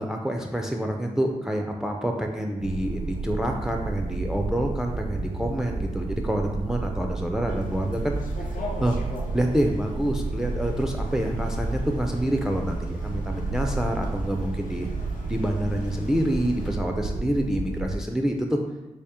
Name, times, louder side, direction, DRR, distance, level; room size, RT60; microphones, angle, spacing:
voice 1, 0.0-9.0 9.3-14.9 15.3-18.6, equal, 5° right, 2 dB, 0.4 m, -27 dB
sound 1, 2.6-18.0, right 3 dB, 80° right, 0.4 m, -32 dB
sound 2, 7.5-16.7, left 1 dB, 70° left, 0.6 m, -38 dB
3.2 x 2.8 x 3.4 m, 1.0 s
supercardioid pair, 40°, 15 cm